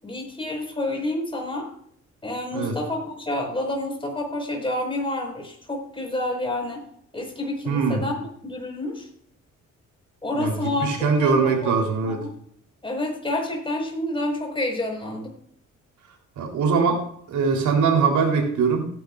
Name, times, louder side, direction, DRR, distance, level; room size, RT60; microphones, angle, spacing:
voice 1, 0.0-1.7 2.2-6.8 7.1-8.2 8.4-9.1 10.2-11.7 12.0-12.3 12.8-15.3, left 1 dB, 15° left, 1 dB, 5.3 m, -29 dB
voice 2, 7.7-8.0 10.4-10.5 10.8-12.2 16.4-17.0 17.3-18.9, right 5 dB, 75° right, 1 dB, 3.8 m, -21 dB
17.0 x 10.5 x 2.5 m, 0.65 s
cardioid pair, 90°, 30 cm